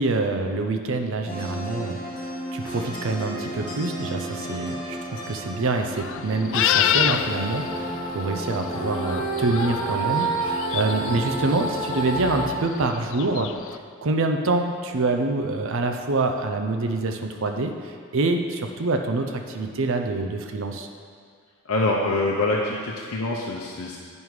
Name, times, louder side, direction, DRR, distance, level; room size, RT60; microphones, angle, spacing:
voice 1, 0.0-2.0 2.5-13.5 14.0-20.9, right 2 dB, 65° right, 5 dB, 0.6 m, -26 dB
sound 1, 1.3-12.5, right 2 dB, 20° left, 1.4 m, -30 dB
sound 2, 5.8-13.8, left 10 dB, 65° left, 0.3 m, -28 dB
voice 2, 21.6-24.0, left 2 dB, 85° left, -2 dB, 0.7 m, -25 dB
9.3 x 5.4 x 4.7 m, 2.1 s
head